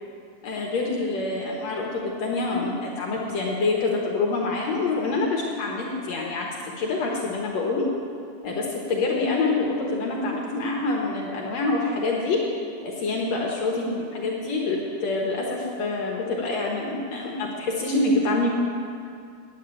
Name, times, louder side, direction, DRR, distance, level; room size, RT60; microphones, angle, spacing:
voice 1, 0.4-6.5 6.8-7.8 8.4-12.4 12.8-18.5, left 3 dB, 65° left, -1 dB, 2.1 m, -26 dB
9.4 x 8.4 x 9.5 m, 2.3 s
omnidirectional pair, 3.8 m